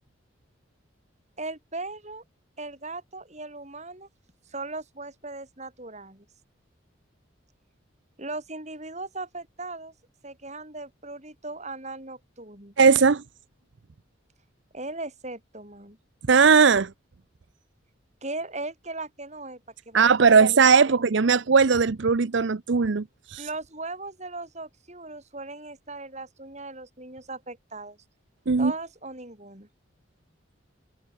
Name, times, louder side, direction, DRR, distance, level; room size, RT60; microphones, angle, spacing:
voice 1, 1.4-2.2 2.6-4.1 4.5-6.3 8.2-9.9 10.2-12.7 14.7-16.0 18.2-19.6 19.9-21.0 23.4-28.0 28.6-29.7, right 2 dB, 35° right, 7.3 m, -38 dB
voice 2, 12.8-13.2 16.3-16.9 19.9-23.5 28.5-28.7, right 5 dB, 65° right, 0.6 m, -19 dB
head